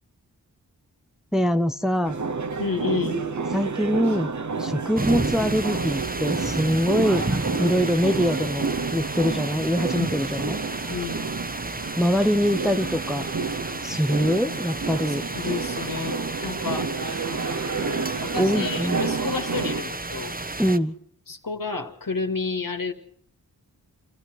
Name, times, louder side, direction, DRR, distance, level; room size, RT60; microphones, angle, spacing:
voice 1, 1.3-2.2 3.5-4.3 4.6-7.2 7.6-8.7 8.9-10.6 12.0-13.2 13.8-15.2 18.4-19.1 20.6-20.9, equal, ahead, 8 dB, 1.0 m, -23 dB
sound 1, 2.0-19.8, right 4 dB, 50° right, 1.2 m, -30 dB
voice 2, 2.6-3.2 10.0-10.1 10.9-11.3 15.3-16.9 18.2-20.3 21.3-22.9, left 4 dB, 60° left, 5 dB, 2.5 m, -30 dB
sound 2, 5.0-20.8, right 2 dB, 25° right, 1.3 m, -32 dB
27.5 x 14.5 x 6.4 m, 0.68 s
cardioid pair, 45°, 38 cm